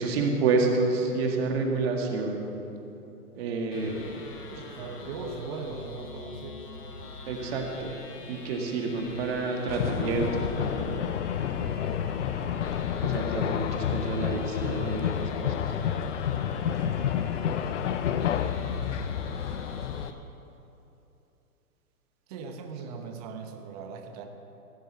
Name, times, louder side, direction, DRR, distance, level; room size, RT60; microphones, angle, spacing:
voice 1, 0.0-2.6 3.3-4.0 7.3-7.9 8.3-11.1 13.0-15.6, right 3 dB, 40° right, 2 dB, 1.9 m, -29 dB
sound 1, 3.7-20.1, left 3 dB, 85° left, 1.8 m, -44 dB
voice 2, 4.5-6.7 11.6-12.1 13.0-13.5 18.1-18.3 18.6-19.0 22.3-24.2, right 4 dB, 25° right, 5 dB, 0.9 m, -40 dB
sound 2, 9.7-20.1, left 9 dB, 55° left, 0.6 m, -29 dB
16.0 x 5.4 x 8.0 m, 2.9 s
hypercardioid pair, 150°, 45 cm